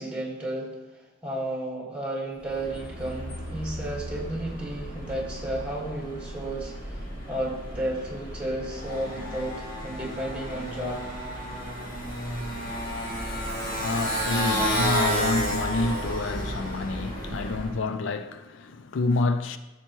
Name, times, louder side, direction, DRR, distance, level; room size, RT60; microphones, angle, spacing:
voice 1, 0.0-7.0 7.3-11.1, right 1 dB, 5° right, 1.7 m, -33 dB
Motorcycle, 2.4-17.8, equal, 45° left, 1.7 m, -32 dB
voice 2, 13.7-19.6, left 3 dB, 70° left, 0.4 m, -28 dB
13.5 x 5.8 x 3.0 m
head